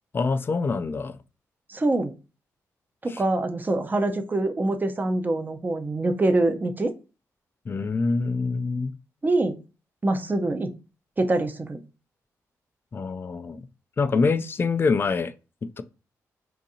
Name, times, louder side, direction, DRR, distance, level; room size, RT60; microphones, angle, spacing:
voice 1, 0.1-1.2 3.1-3.2 7.7-8.9 12.9-13.6 14.0-15.3 15.8-15.9, left 4 dB, 35° left, 0.4 m, -25 dB
voice 2, 1.7-2.1 3.0-6.9 9.2-9.6 10.0-10.7 11.2-11.8, right 2 dB, 30° right, 0.7 m, -24 dB
3.8 x 2.6 x 2.7 m
cardioid pair, 65°, 7 cm